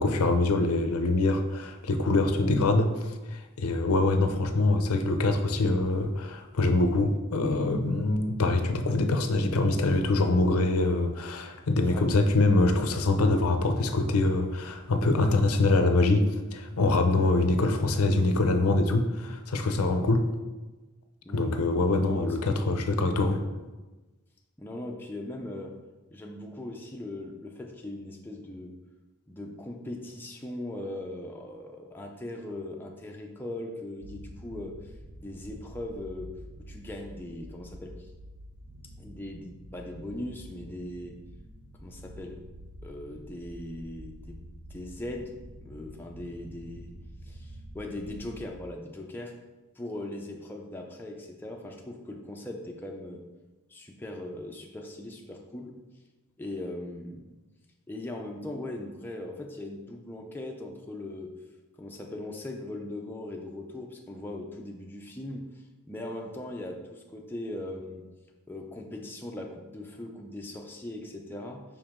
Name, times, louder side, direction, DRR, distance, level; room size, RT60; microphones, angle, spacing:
voice 1, 0.0-20.2 21.3-23.4, left 2 dB, 80° left, 7 dB, 0.6 m, -24 dB
voice 2, 11.8-12.1 21.2-21.6 22.0-22.6 24.6-25.7 26.1-28.7 29.3-34.9 35.2-36.3 36.7-37.9 39.0-41.2 41.8-42.4 42.8-44.4 44.7-45.3 45.6-46.9 47.2-49.3 49.8-53.2 53.7-55.7 56.4-57.3 57.9-61.3 61.8-65.5 65.9-68.0 68.5-71.6, left 1 dB, 10° left, 0 dB, 0.5 m, -39 dB
sound 1, 34.0-48.4, equal, 75° right, 0.8 m, -47 dB
5.3 x 4.8 x 3.6 m, 1.2 s
head